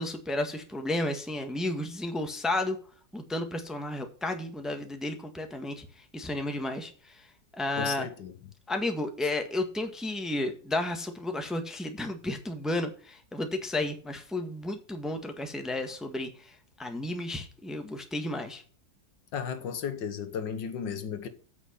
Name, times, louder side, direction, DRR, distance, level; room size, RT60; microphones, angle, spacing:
voice 1, 0.0-2.8 3.1-5.8 6.1-6.9 7.5-8.1 8.7-16.5 16.8-18.6, left 2 dB, ahead, 1.4 m, -32 dB
voice 2, 7.8-8.3 19.3-21.3, left 7 dB, 70° left, 1.8 m, -34 dB
8.7 x 7.0 x 6.7 m
omnidirectional pair, 2.0 m